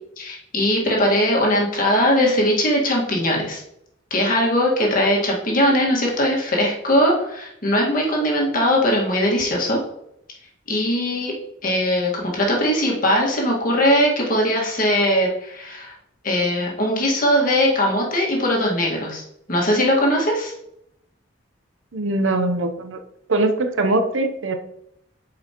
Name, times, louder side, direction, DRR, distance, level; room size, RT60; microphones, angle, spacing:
voice 1, 0.2-3.6 4.1-9.8 10.7-11.3 11.6-15.9 16.2-20.5, equal, 45° left, -2 dB, 1.8 m, -20 dB
voice 2, 21.9-23.0 23.3-24.6, right 2 dB, 80° right, 7 dB, 0.8 m, -21 dB
8.4 x 5.0 x 3.0 m, 0.76 s
head